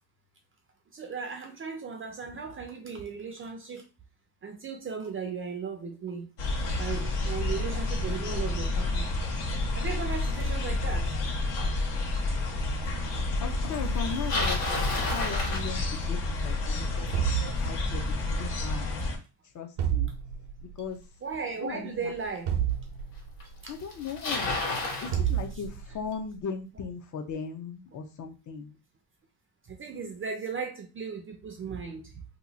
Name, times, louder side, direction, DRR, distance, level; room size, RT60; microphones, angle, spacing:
voice 1, 0.9-3.9 4.4-6.3 6.8-9.1 9.7-11.1 12.2-12.3 17.4-17.7 21.2-22.5 23.6-23.7 29.6-32.2, right 5 dB, 30° right, 0.4 m, -36 dB
sound 1, 6.4-19.2, left 2 dB, 75° left, 1.1 m, -30 dB
voice 2, 13.4-18.9 19.5-20.1 20.8-21.0 21.6-22.1 23.7-24.6 25.0-28.7, left 6 dB, 45° left, 0.6 m, -38 dB
Bicycle, 13.9-16.3 21.3-21.4 22.3-22.4 23.4-23.5 23.7-25.1, left 2 dB, 90° left, 1.5 m, -31 dB
sound 2, 17.1-18.3 19.8-20.7 22.5-23.5 25.1-26.1, right 10 dB, 75° right, 0.7 m, -30 dB
2.9 x 2.3 x 3.8 m
cardioid pair, 155°, 43 cm